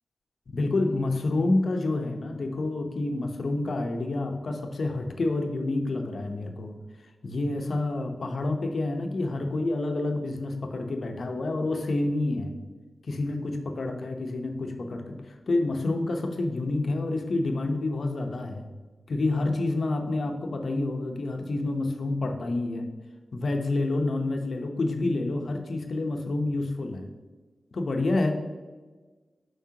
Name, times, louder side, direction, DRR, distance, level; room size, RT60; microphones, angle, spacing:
voice 1, 0.5-6.8 7.2-12.5 13.1-18.7 19.1-22.9 23.3-27.1 27.7-28.3, left 2 dB, 70° left, 4 dB, 0.8 m, -28 dB
7.4 x 5.4 x 2.9 m, 1.3 s
cardioid pair, 50°, 0 cm